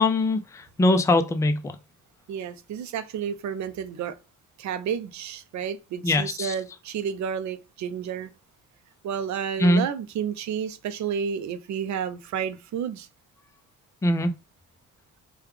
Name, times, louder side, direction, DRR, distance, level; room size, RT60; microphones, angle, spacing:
voice 1, 0.0-1.6 6.0-6.5 9.6-9.8 14.0-14.3, left 2 dB, 10° left, 0.4 m, -22 dB
voice 2, 2.3-4.1 4.6-8.3 9.0-13.1, right 8 dB, 65° right, 0.6 m, -31 dB
3.3 x 2.3 x 3.1 m
cardioid pair, 90°, 30 cm